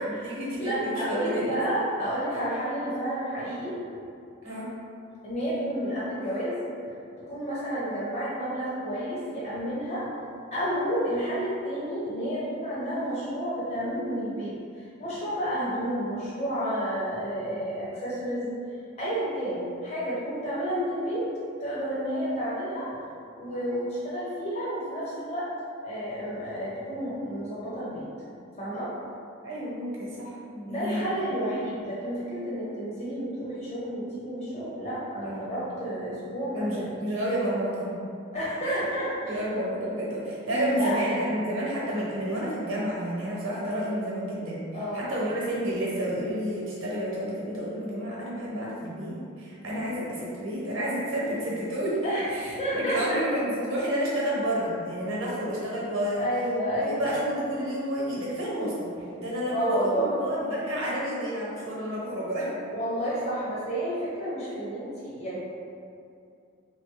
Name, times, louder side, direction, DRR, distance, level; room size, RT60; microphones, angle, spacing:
voice 1, 0.0-1.5 4.4-4.7 29.4-31.1 35.2-35.6 36.5-37.9 39.2-44.7 44.9-56.3 56.8-58.9 59.2-62.5, equal, 70° right, -6 dB, 0.9 m, -30 dB
voice 2, 0.6-3.8 5.2-6.6 7.3-10.1 10.5-14.6 15.0-18.5 19.0-21.3 21.6-22.9 23.4-25.5 25.8-28.0 28.6-28.9 30.7-36.8 38.3-39.4 40.5-40.9 44.7-45.1 52.0-52.3 52.6-53.2 56.2-57.1 59.5-60.1 62.7-65.4, equal, 35° left, -8 dB, 0.9 m, -30 dB
3.1 x 2.1 x 3.2 m, 2.5 s
head